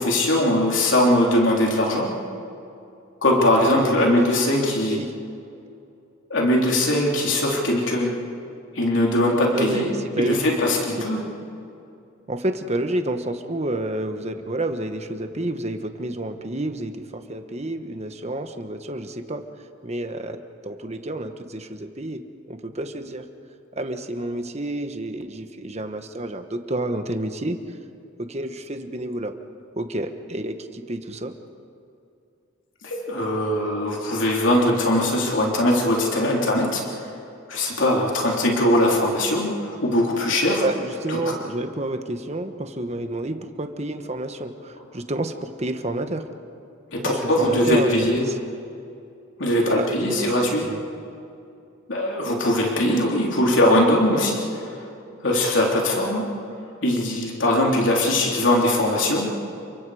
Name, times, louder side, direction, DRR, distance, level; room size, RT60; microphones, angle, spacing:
voice 1, 0.0-2.2 3.2-5.0 6.3-8.2 8.7-11.2 32.8-37.2 37.5-40.6 41.1-41.3 46.9-48.2 49.4-50.7 51.9-54.9 55.2-56.3 56.8-59.3, left 1 dB, 70° left, -2 dB, 3.3 m, -21 dB
voice 2, 3.4-4.3 4.9-5.1 9.5-9.9 10.2-10.5 12.3-19.4 19.8-22.2 22.5-23.3 23.7-27.6 28.2-29.4 29.8-31.3 40.6-46.3 47.0-48.3 49.6-50.8, right 1 dB, 35° right, 7 dB, 1.3 m, -29 dB
29.5 x 24.0 x 5.0 m, 2.6 s
head